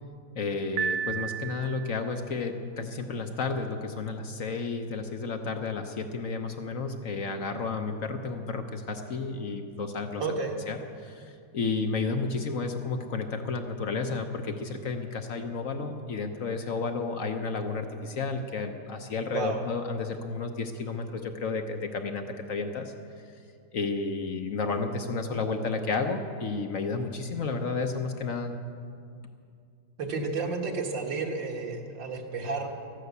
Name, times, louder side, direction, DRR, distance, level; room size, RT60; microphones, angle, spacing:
voice 1, 0.3-10.2 10.7-22.9 23.7-28.5, left 4 dB, 55° left, 6 dB, 1.0 m, -32 dB
Piano, 0.8-2.1, right 7 dB, 80° right, 1.6 m, -32 dB
voice 2, 10.2-10.6 19.3-19.6 30.0-32.7, right 4 dB, 65° right, 1 dB, 2.1 m, -31 dB
13.5 x 11.5 x 8.2 m, 2.3 s
omnidirectional pair, 2.2 m